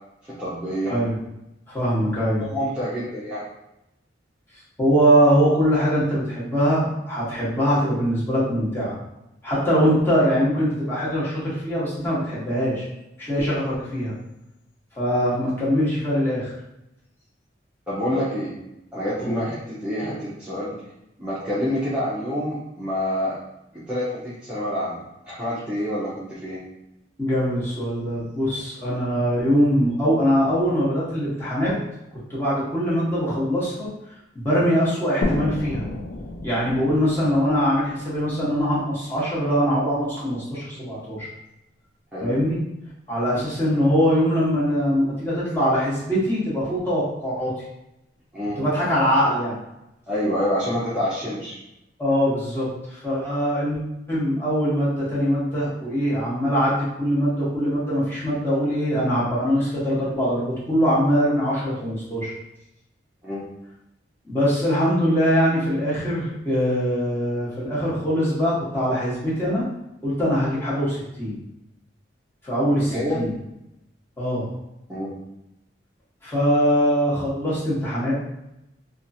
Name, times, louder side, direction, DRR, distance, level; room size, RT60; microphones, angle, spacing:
voice 1, 0.2-0.9 2.1-3.4 17.9-18.5 18.9-20.7 21.2-23.4 23.7-26.6 42.1-42.3 48.3-48.6 50.1-51.6 63.2-63.5 72.9-73.2 74.9-75.1, equal, 5° right, -11 dB, 0.6 m, -27 dB
voice 2, 0.9-1.2 1.7-2.4 4.8-8.9 9.4-12.8 13.2-14.1 15.0-16.5 19.2-19.4 27.2-31.7 32.3-33.9 34.3-35.9 36.4-41.3 42.2-42.6 43.1-47.5 48.6-49.6 52.0-53.8 54.1-62.3 64.2-69.6 70.0-71.4 72.4-73.3 74.2-74.5 76.2-78.1, equal, 15° left, -9 dB, 1.0 m, -22 dB
sound 1, 35.2-38.7, left 2 dB, 70° left, 0.4 m, -31 dB
2.9 x 2.4 x 2.6 m, 0.87 s
head